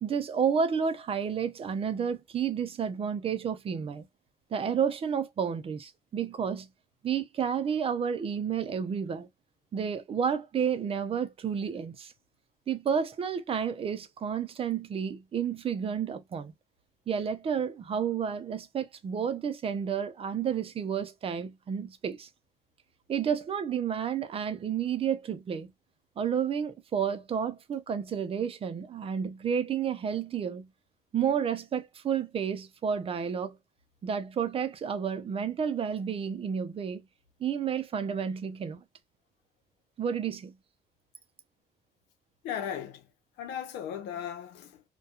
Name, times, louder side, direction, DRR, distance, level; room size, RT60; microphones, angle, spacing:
voice 1, 0.0-4.1 4.5-6.7 7.0-9.3 9.7-12.1 12.7-16.5 17.1-22.3 23.1-25.7 26.2-30.7 31.1-33.6 34.0-37.0 37.4-38.8 40.0-40.5, right 7 dB, 35° right, 0.5 m, -31 dB
voice 2, 42.4-43.1 43.4-44.8, left 9 dB, 90° left, 0.7 m, -36 dB
2.3 x 2.3 x 2.7 m
cardioid pair, 110°, 17 cm